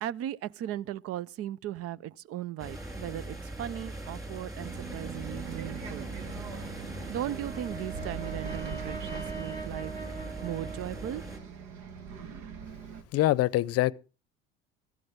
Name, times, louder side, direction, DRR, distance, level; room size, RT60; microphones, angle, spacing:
voice 1, 0.0-6.1 7.1-9.9 10.4-11.2, right 12 dB, 50° right, 0.6 m, -37 dB
sound 1, 2.6-11.4, right 1 dB, 10° right, 4.4 m, -41 dB
Bus, 4.6-13.0, right 6 dB, 65° right, 1.7 m, -42 dB
Brass instrument, 7.1-11.5, right 4 dB, 30° right, 2.0 m, -42 dB
voice 2, 13.1-13.9, left 15 dB, 50° left, 0.7 m, -24 dB
15.0 x 12.0 x 3.7 m
hypercardioid pair, 75°, 31 cm